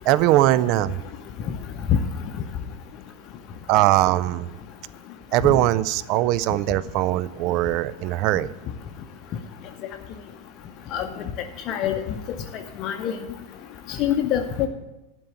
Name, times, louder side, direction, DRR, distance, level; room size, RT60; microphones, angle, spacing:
voice 1, 0.1-1.0 3.7-4.5 5.3-8.5, right 15 dB, 40° right, 18 dB, 0.3 m, -21 dB
voice 2, 11.7-12.0 12.8-13.2 13.9-14.7, left 10 dB, 35° left, 5 dB, 0.7 m, -24 dB
11.5 x 4.6 x 7.9 m, 1.0 s
figure-of-eight pair, 90°, 0 cm